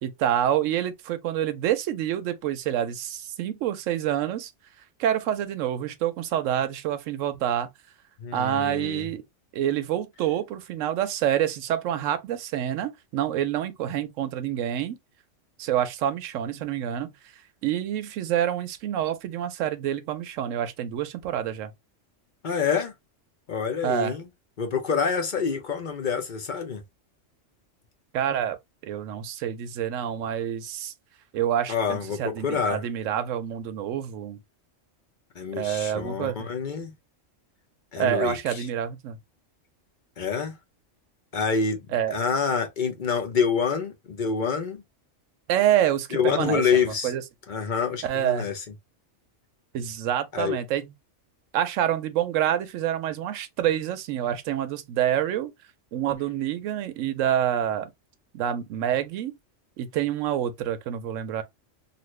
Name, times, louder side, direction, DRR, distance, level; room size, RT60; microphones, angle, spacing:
voice 1, 0.0-4.5 5.0-7.7 8.3-9.2 9.5-15.0 15.6-17.1 17.6-21.7 23.8-24.1 28.1-28.6 28.8-30.9 31.3-34.4 35.5-36.5 38.0-39.2 41.9-42.2 45.5-47.2 48.0-48.5 49.7-50.9 51.5-55.5 55.9-57.9 58.3-59.3 59.8-61.4, right 10 dB, 90° right, 1.0 m, -27 dB
voice 2, 8.2-9.1 22.4-22.9 23.5-24.3 24.6-26.8 31.7-32.8 35.3-36.9 37.9-38.7 40.2-40.5 41.3-41.9 42.1-44.8 46.1-47.1 47.5-48.5 50.3-50.6, left 6 dB, 45° left, 0.8 m, -27 dB
2.8 x 2.5 x 3.1 m
omnidirectional pair, 1.3 m